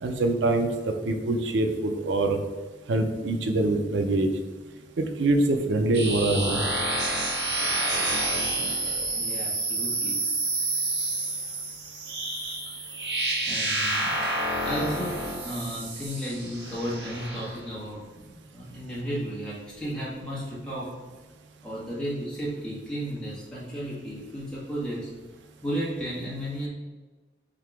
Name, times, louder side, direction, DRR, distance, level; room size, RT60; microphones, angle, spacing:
voice 1, 0.0-2.4 2.9-4.3 5.0-6.6, right 2 dB, 90° right, 6 dB, 0.5 m, -24 dB
sound 1, 5.9-17.6, right 2 dB, 70° right, 1.0 m, -29 dB
voice 2, 9.1-10.2 13.5-14.1 14.6-15.2 15.4-20.9 21.6-25.1 25.6-26.7, equal, 5° left, -8 dB, 1.4 m, -33 dB
3.9 x 2.8 x 4.5 m, 1.3 s
head